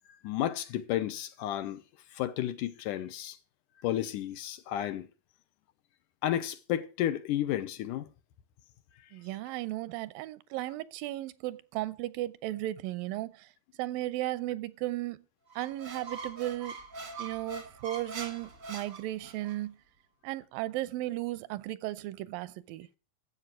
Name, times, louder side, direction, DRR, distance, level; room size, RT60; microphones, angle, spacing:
voice 1, 0.2-1.8 2.1-3.4 3.8-5.1 6.2-8.1, left 12 dB, 75° left, 2.2 m, -32 dB
voice 2, 9.1-13.5 13.8-15.2 15.6-16.7 17.2-19.8 20.2-22.9, right 16 dB, 85° right, 2.4 m, -35 dB
Squeak, 15.5-19.6, right 4 dB, 45° right, 1.1 m, -43 dB
12.5 x 8.0 x 6.0 m
omnidirectional pair, 4.0 m